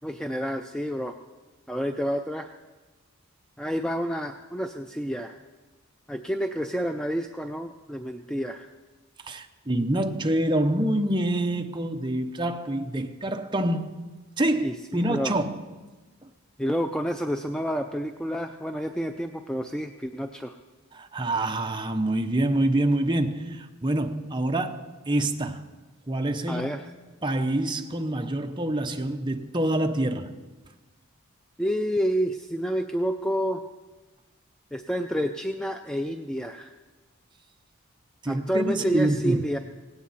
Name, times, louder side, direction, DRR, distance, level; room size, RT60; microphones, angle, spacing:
voice 1, 0.0-1.2 1.7-2.5 3.6-5.4 6.1-8.7 14.6-14.7 15.0-15.3 16.6-20.6 26.5-26.9 31.6-33.6 34.7-36.7 38.3-39.6, equal, 5° left, 0.4 m, -29 dB
voice 2, 9.2-14.1 14.4-15.6 20.9-25.7 26.1-26.6 27.2-30.3 38.2-39.4, right 1 dB, 20° right, 0.8 m, -26 dB
18.0 x 17.0 x 4.2 m
head